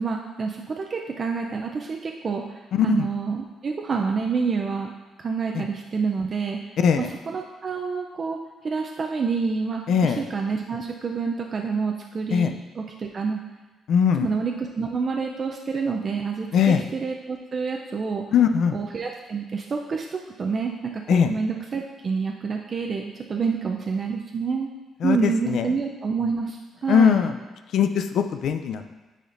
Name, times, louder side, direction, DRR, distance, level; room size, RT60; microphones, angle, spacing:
voice 1, 0.0-4.9 5.2-6.6 7.0-8.4 8.6-13.4 14.2-18.2 18.7-24.7 25.0-26.6 26.8-27.2, right 5 dB, 45° right, 1 dB, 0.5 m, -28 dB
voice 2, 2.7-3.1 5.5-5.7 6.8-7.1 9.9-10.2 12.3-12.5 13.9-14.3 16.5-16.8 18.3-18.8 21.1-21.3 25.0-25.7 26.9-27.3 27.7-28.9, left 7 dB, 70° left, 8 dB, 0.4 m, -20 dB
9.8 x 4.2 x 2.6 m, 1.2 s
cardioid pair, 90°, 0 cm